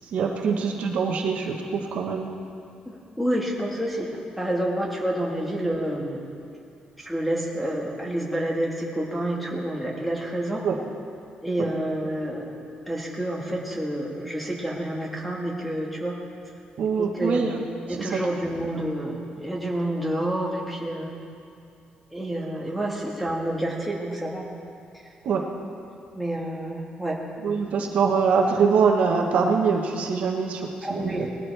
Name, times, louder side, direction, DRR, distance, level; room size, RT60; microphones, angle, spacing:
voice 1, 0.1-2.3 10.6-10.8 16.8-17.6 18.0-18.2 25.2-25.4 27.4-31.3, right 5 dB, 60° right, 1 dB, 1.2 m, -24 dB
voice 2, 2.8-6.3 7.0-10.6 11.4-12.6 12.9-16.1 16.9-17.4 17.9-21.2 22.1-24.5 26.1-27.2 30.8-31.3, right 1 dB, ahead, -2 dB, 1.6 m, -28 dB
19.5 x 13.5 x 3.4 m, 2.5 s
cardioid pair, 170°, 3 cm